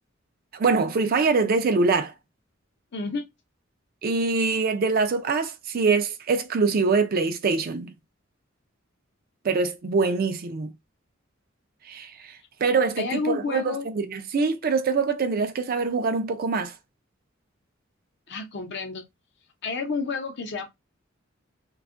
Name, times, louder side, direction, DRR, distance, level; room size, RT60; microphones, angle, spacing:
voice 1, 0.5-2.1 4.0-7.9 9.4-10.7 11.9-16.7, right 4 dB, 50° right, 0.4 m, -24 dB
voice 2, 2.9-3.2 13.0-13.8 18.3-19.0 19.6-20.7, left 4 dB, 60° left, 0.6 m, -30 dB
2.6 x 2.3 x 2.4 m
head